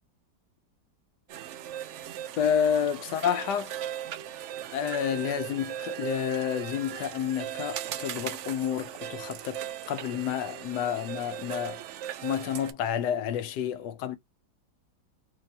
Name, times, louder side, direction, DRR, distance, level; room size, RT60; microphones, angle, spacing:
sound 1, 1.3-12.7, right 11 dB, 85° right, 0.6 m, -38 dB
voice 1, 2.4-3.7 4.7-11.8 12.2-14.2, left 8 dB, 85° left, 1.2 m, -30 dB
4.1 x 2.7 x 3.2 m
omnidirectional pair, 1.8 m